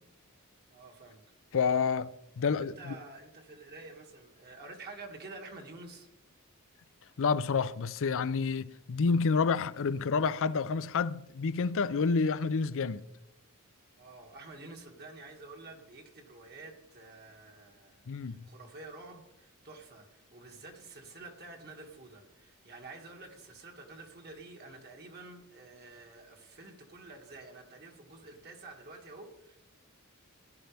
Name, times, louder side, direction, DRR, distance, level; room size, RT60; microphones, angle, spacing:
voice 1, 0.7-1.2 2.5-6.1 14.0-29.6, right 3 dB, 50° right, 2.2 m, -49 dB
voice 2, 1.5-2.9 7.2-13.0 18.1-18.5, left 5 dB, 60° left, 0.5 m, -29 dB
17.0 x 10.5 x 3.4 m
head